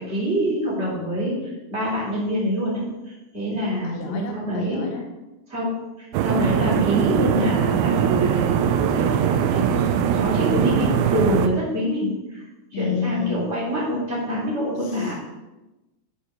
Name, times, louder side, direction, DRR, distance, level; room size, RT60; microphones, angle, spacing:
voice 1, 0.0-5.0 5.5-12.4 12.7-15.2, equal, 20° right, -5 dB, 2.0 m, -26 dB
voice 2, 3.5-5.1 12.7-13.5 15.0-15.2, left 7 dB, 80° left, 4 dB, 2.7 m, -30 dB
sound 1, 6.1-11.5, right 8 dB, 80° right, 2.7 m, -21 dB
10.5 x 4.9 x 5.0 m, 1.0 s
omnidirectional pair, 5.8 m